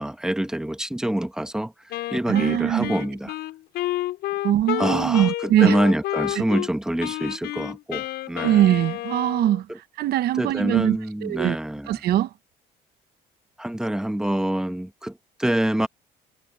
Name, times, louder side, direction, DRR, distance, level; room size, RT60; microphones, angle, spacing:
voice 1, 0.0-1.7 2.1-3.3 4.8-8.7 9.7-9.8 10.3-12.0 13.6-15.9, right 1 dB, 5° right, 1.5 m, -26 dB
Wind instrument woodwind instrument, 1.9-6.7 7.0-9.6, left 15 dB, 80° left, 6.0 m, -30 dB
voice 2, 2.3-2.9 4.4-5.8 6.4-6.5 8.4-9.6 10.0-11.6 11.9-12.3, right 12 dB, 70° right, 1.0 m, -21 dB
cardioid pair, 110°, 17 cm